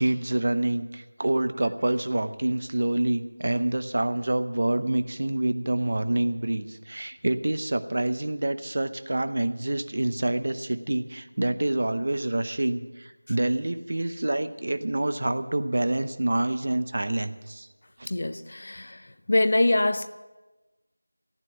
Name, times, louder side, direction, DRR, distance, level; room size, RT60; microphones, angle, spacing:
voice 1, 0.0-17.7 18.0-18.1, right 1 dB, 35° right, 11 dB, 0.7 m, -27 dB
voice 2, 18.1-19.0 19.3-20.1, left 2 dB, 30° left, 12 dB, 0.5 m, -24 dB
15.0 x 9.1 x 8.0 m, 1.2 s
figure-of-eight pair, 180°, 0 cm